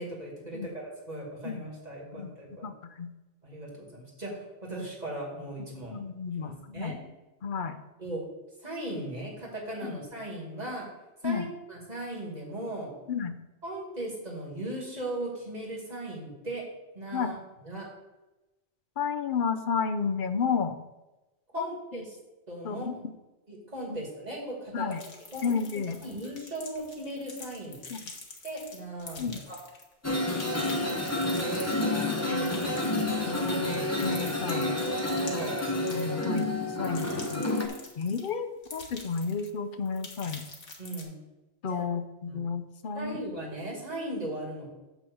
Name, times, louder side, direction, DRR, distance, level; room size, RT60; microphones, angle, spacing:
voice 1, 0.0-2.7 3.4-6.0 6.4-6.9 8.0-8.2 8.6-10.8 11.2-12.9 13.6-16.6 16.9-17.4 17.6-17.9 21.5-22.0 22.5-23.0 23.5-24.8 25.3-25.5 26.0-27.8 28.4-29.6 32.3-32.7 35.2-35.5 40.8-41.1 41.7-41.8 42.2-42.4 42.9-44.7, right 1 dB, 35° right, -3 dB, 2.5 m, -38 dB
voice 2, 5.9-7.0 7.4-7.8 9.8-10.0 11.2-11.5 13.1-13.3 17.1-17.3 19.0-20.8 21.6-21.7 22.6-22.9 23.9-24.0 24.7-25.0 25.4-26.0 27.9-28.0 29.2-29.4 31.9-32.4 32.8-34.7 35.9-36.5 36.8-37.5 38.0-40.4 41.6-43.2, left 6 dB, 50° left, 9 dB, 0.7 m, -32 dB
sound 1, 24.9-29.9 30.2-38.3 38.6-39.6 39.9-41.0, left 3 dB, 85° left, 1.7 m, -46 dB
sound 2, 30.0-37.7, left 1 dB, 15° left, 0.9 m, -29 dB
9.1 x 3.9 x 7.1 m, 1.0 s
omnidirectional pair, 1.2 m